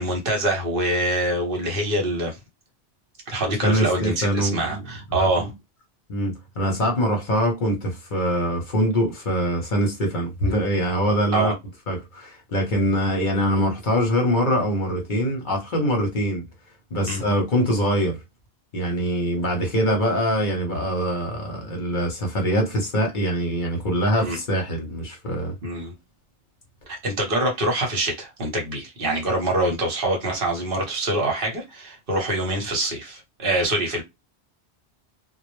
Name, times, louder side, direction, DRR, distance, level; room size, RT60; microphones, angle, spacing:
voice 1, 0.0-2.4 3.3-5.5 11.3-11.5 17.1-17.2 24.2-24.4 25.6-25.9 27.0-34.0, right 1 dB, 60° right, 1.0 m, -25 dB
voice 2, 3.6-4.8 5.1-5.5 6.1-11.5 11.9-16.4 16.9-18.2 18.7-25.5, equal, 50° left, 0.8 m, -23 dB
2.1 x 2.0 x 2.9 m
omnidirectional pair, 1.1 m